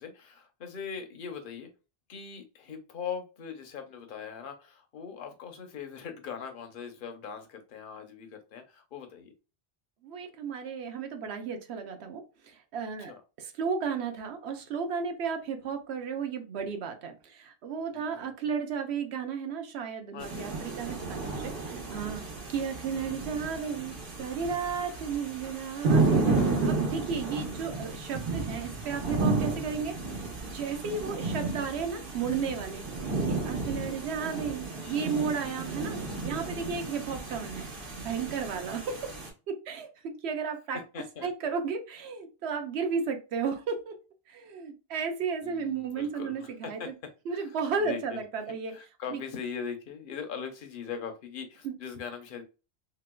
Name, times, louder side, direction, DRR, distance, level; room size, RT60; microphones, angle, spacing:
voice 1, 0.0-1.7 2.1-9.3 13.0-13.2 17.9-18.2 20.1-21.1 22.1-22.4 25.8-26.4 34.7-35.9 40.9-41.3 45.4-46.9 47.3-48.2 48.7-52.4, left 7 dB, 60° left, 5 dB, 0.8 m, -41 dB
voice 2, 10.0-12.2 12.7-13.1 13.4-22.2 22.5-30.0 30.5-32.9 33.3-36.0 36.2-39.1 39.5-40.8 41.2-43.9 44.3-46.9 47.3-48.7 49.1-49.2 51.6-51.7, right 6 dB, 85° right, 6 dB, 0.9 m, -34 dB
sound 1, 20.2-39.3, right 3 dB, 55° right, 1.2 m, -32 dB
3.2 x 2.9 x 2.2 m, 0.31 s
omnidirectional pair, 1.1 m